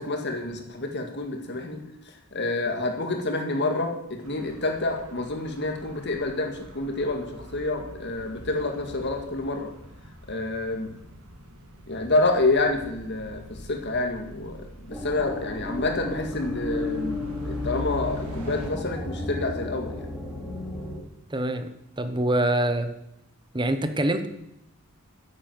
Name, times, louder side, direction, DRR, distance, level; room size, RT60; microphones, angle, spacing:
voice 1, 0.0-1.8 2.3-9.7 10.3-10.9 11.9-20.1, left 2 dB, 50° left, 4 dB, 2.0 m, -28 dB
sound 1, 4.2-18.7, left 1 dB, 80° right, 2.3 m, -42 dB
sound 2, 14.9-21.0, left 2 dB, 5° right, 2.6 m, -34 dB
voice 2, 21.3-21.7 22.0-22.9 23.5-24.3, right 1 dB, 20° right, 9 dB, 1.0 m, -24 dB
10.5 x 8.7 x 7.8 m, 0.81 s
head